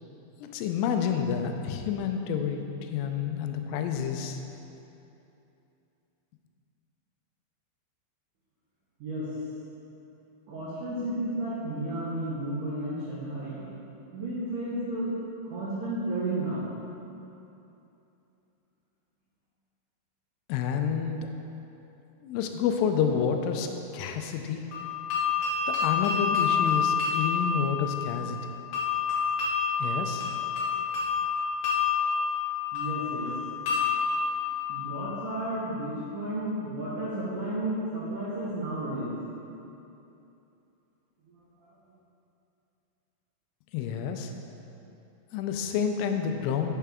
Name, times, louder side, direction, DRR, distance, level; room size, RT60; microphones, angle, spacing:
voice 1, 0.4-4.4 20.5-21.3 22.2-23.7 23.9-24.6 25.7-28.4 29.8-30.3 43.7-44.3 45.3-46.7, left 7 dB, 90° left, 5 dB, 3.1 m, -29 dB
voice 2, 10.5-13.6 14.1-15.1 15.5-16.7 32.7-33.3 34.7-39.1 41.3-41.7, right 1 dB, 80° right, -10 dB, 1.8 m, -32 dB
sound 1, 24.7-35.5, left 6 dB, 65° left, 2.7 m, -28 dB
8.5 x 6.6 x 3.5 m, 2.8 s
omnidirectional pair, 5.5 m